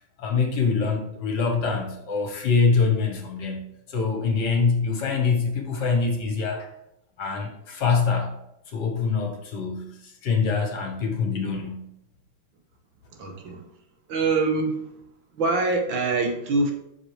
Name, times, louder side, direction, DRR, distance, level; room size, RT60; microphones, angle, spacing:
voice 1, 0.2-6.7 7.2-8.3 8.7-11.9, left 5 dB, 60° left, 3 dB, 1.5 m, -24 dB
voice 2, 13.1-13.6 14.1-14.9 15.4-16.7, right 3 dB, 70° right, 4 dB, 1.7 m, -24 dB
7.4 x 6.0 x 3.2 m, 0.79 s
omnidirectional pair, 2.3 m